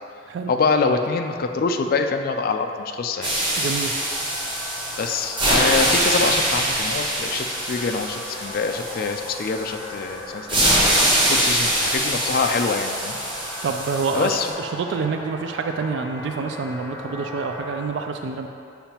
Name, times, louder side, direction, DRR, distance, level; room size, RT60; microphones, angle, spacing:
voice 1, 0.5-3.3 5.0-10.8 11.3-13.2 14.1-14.5, left 4 dB, 50° left, 5 dB, 0.3 m, -25 dB
sound 1, 3.1-17.9, left 1 dB, 15° left, 0.7 m, -38 dB
sound 2, 3.2-9.9 10.5-14.5, right 1 dB, 25° right, 1.1 m, -23 dB
voice 2, 3.6-4.0 13.6-18.5, right 4 dB, 65° right, 5 dB, 0.3 m, -27 dB
7.0 x 5.6 x 2.9 m, 2.5 s
head